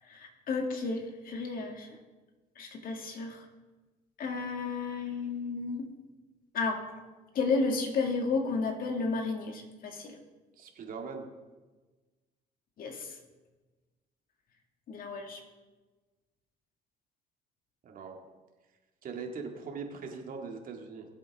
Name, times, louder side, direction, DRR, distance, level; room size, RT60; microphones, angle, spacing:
voice 1, 0.1-2.0 2.6-3.5 4.2-5.9 6.5-6.8 7.3-10.2 12.8-13.2 14.9-15.4, left 4 dB, 55° left, 3 dB, 2.0 m, -32 dB
voice 2, 10.6-11.3 17.8-18.2 19.0-21.1, right 5 dB, 55° right, 2 dB, 2.1 m, -40 dB
20.0 x 7.9 x 3.6 m, 1.2 s
cardioid pair, 110°, 17 cm